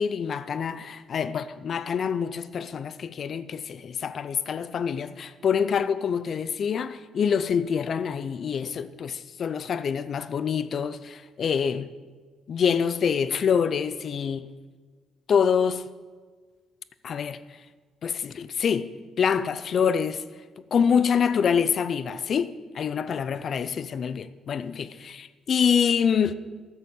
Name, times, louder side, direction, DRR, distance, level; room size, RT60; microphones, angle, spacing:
voice 1, 0.0-11.9 12.5-14.5 15.3-15.8 17.0-17.4 18.0-18.9 19.2-20.2 20.7-26.3, left 7 dB, 55° left, 0.6 m, -26 dB
13.5 x 6.6 x 7.2 m
cardioid pair, 90°, 0 cm